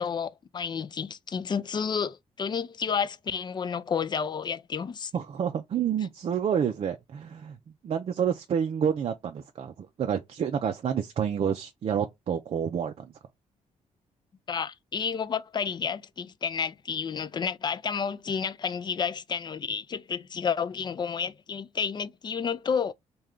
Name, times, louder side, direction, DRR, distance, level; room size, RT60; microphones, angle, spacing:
voice 1, 0.0-5.1 14.5-22.9, left 6 dB, 35° left, 0.4 m, -31 dB
voice 2, 5.1-7.6 7.8-13.1, right 8 dB, 50° right, 0.4 m, -29 dB
3.2 x 2.3 x 3.6 m
cardioid pair, 95°, 13 cm